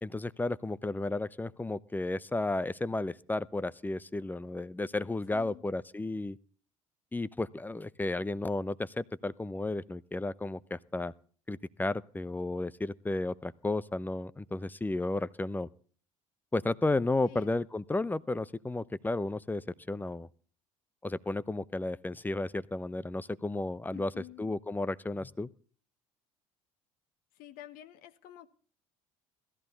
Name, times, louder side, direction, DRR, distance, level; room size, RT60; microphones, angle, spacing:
voice 1, 0.0-6.4 7.1-11.1 11.5-15.7 16.5-20.3 21.0-25.5, left 2 dB, 10° left, 18 dB, 0.7 m, -33 dB
voice 2, 5.3-5.6 17.3-17.5 23.9-24.5 27.4-28.5, left 12 dB, 55° left, 11 dB, 1.1 m, -49 dB
16.0 x 14.0 x 4.0 m, 0.43 s
figure-of-eight pair, 60°, 17 cm